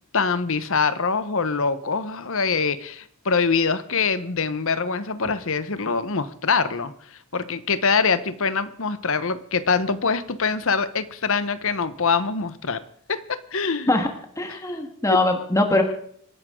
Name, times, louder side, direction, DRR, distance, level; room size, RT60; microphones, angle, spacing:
voice 1, 0.1-6.9 7.3-12.8 13.1-13.9, left 5 dB, 65° left, 13 dB, 1.1 m, -24 dB
voice 2, 14.4-15.8, left 2 dB, 15° left, 4 dB, 1.7 m, -21 dB
27.5 x 11.5 x 3.8 m, 0.65 s
head